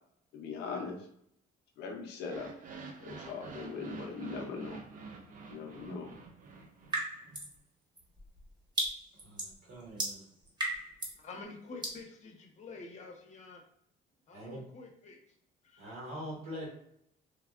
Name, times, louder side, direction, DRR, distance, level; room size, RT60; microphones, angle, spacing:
voice 1, 0.3-1.0 1.8-2.5 3.0-4.8 5.5-6.1, left 5 dB, 85° left, 1 dB, 0.6 m, -40 dB
sound 1, 2.2-7.3, right 4 dB, 55° right, 0.6 m, -47 dB
sound 2, 6.9-7.6 8.0-11.2 11.8-12.0, right 1 dB, 25° right, 1.0 m, -36 dB
voice 2, 9.2-10.2 14.3-14.6 15.8-16.7, equal, 90° right, -5 dB, 1.2 m, -43 dB
voice 3, 11.2-13.6 14.3-15.2 15.6-15.9, left 3 dB, 45° left, 2 dB, 0.7 m, -48 dB
3.4 x 2.3 x 2.4 m, 0.72 s
cardioid pair, 110°, 17 cm